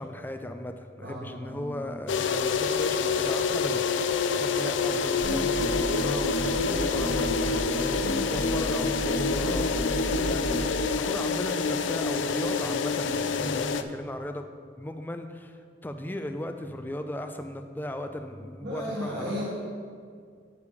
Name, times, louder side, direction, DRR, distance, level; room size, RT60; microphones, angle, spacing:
voice 1, 0.0-9.9 10.2-14.5 14.8-19.4, left 1 dB, 10° left, 6 dB, 0.4 m, -36 dB
voice 2, 1.0-1.8 13.4-13.7 18.6-19.4, equal, 80° right, -9 dB, 1.9 m, -35 dB
sound 1, 2.1-13.8, left 5 dB, 85° left, 0.4 m, -27 dB
sound 2, 5.2-10.7, right 1 dB, 60° left, 1.4 m, -31 dB
9.5 x 3.5 x 6.8 m, 2.1 s
head